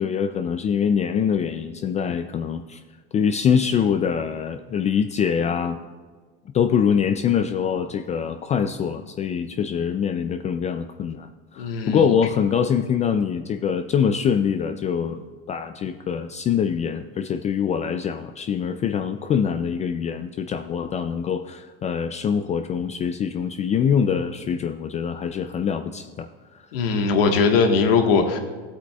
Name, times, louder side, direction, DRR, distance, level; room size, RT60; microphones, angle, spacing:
voice 1, 0.0-2.8 3.1-5.8 6.5-15.2 15.5-26.3, left 7 dB, 25° left, 8 dB, 0.3 m, -24 dB
voice 2, 11.6-12.2 26.7-28.4, left 4 dB, 80° left, 4 dB, 1.5 m, -20 dB
15.0 x 8.2 x 2.3 m, 1.4 s
supercardioid pair, 120°, 29 cm